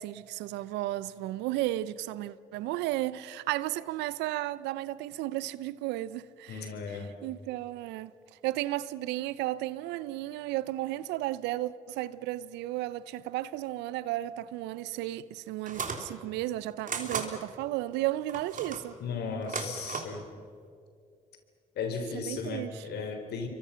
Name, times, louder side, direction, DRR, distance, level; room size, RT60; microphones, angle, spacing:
voice 1, 0.0-6.6 6.9-8.1 8.4-19.0 22.1-22.8, right 15 dB, 80° right, 0.7 m, -34 dB
voice 2, 6.5-7.1 19.0-20.2 21.8-23.5, left 5 dB, 70° left, 3.8 m, -35 dB
sound 1, 15.7-16.1 16.9-17.3 18.3-18.9 19.4-20.2, right 5 dB, 50° right, 3.5 m, -35 dB
29.5 x 24.0 x 5.8 m
hypercardioid pair, 50°, 18 cm